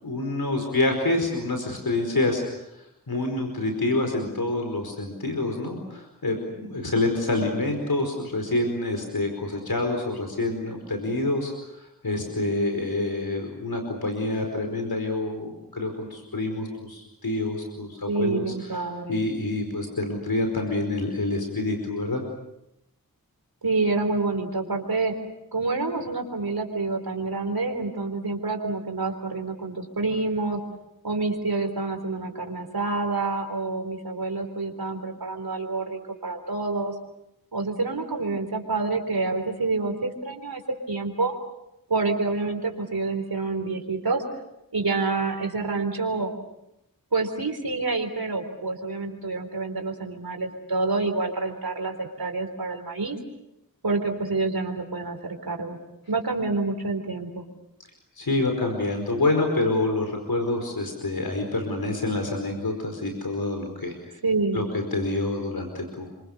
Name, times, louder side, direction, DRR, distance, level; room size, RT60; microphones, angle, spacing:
voice 1, 0.0-2.6 3.1-11.5 11.8-18.4 19.1-22.2 58.2-63.9 64.5-66.1, left 2 dB, 80° left, 4 dB, 4.9 m, -27 dB
voice 2, 18.1-19.2 23.6-25.2 25.5-30.6 31.0-36.9 37.5-40.6 40.9-41.3 41.9-44.2 44.7-46.3 47.1-53.2 53.8-55.8 56.1-57.4 64.2-64.6, right 3 dB, 90° right, 5 dB, 4.1 m, -27 dB
29.5 x 25.5 x 6.7 m, 0.84 s
wide cardioid pair, 40°, 36 cm